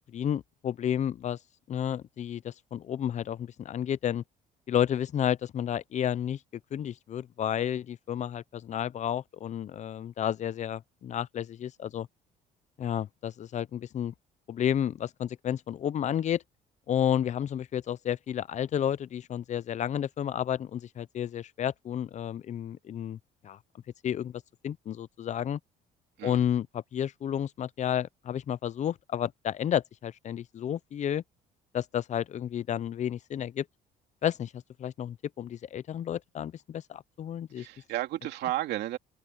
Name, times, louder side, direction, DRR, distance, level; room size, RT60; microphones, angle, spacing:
voice 1, 0.1-1.4 1.7-4.2 4.7-6.4 6.7-12.1 12.8-14.1 14.5-16.4 16.9-23.2 23.4-23.6 24.0-25.6 26.2-31.2 31.7-33.6 34.2-37.7, left 10 dB, 45° left, 0.6 m, -31 dB
voice 2, 37.6-39.0, right 15 dB, 80° right, 2.7 m, -33 dB
cardioid pair, 110°, 17 cm